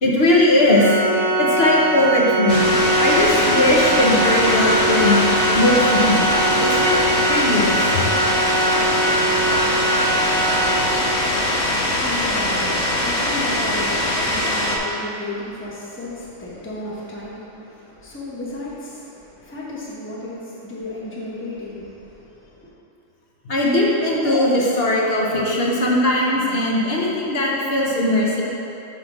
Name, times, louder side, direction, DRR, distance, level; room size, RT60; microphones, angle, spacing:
voice 1, 0.0-0.8 1.4-2.6 3.0-7.8 23.4-28.4, left 1 dB, 50° left, -3 dB, 1.2 m, -19 dB
Organ, 0.7-11.4, right 2 dB, 70° right, 1.0 m, -22 dB
sound 1, 2.5-14.8, left 1 dB, 75° left, 1.2 m, -22 dB
voice 2, 11.6-22.7, left 1 dB, 10° left, -7 dB, 1.0 m, -33 dB
5.8 x 4.3 x 6.0 m, 2.9 s
omnidirectional pair, 1.3 m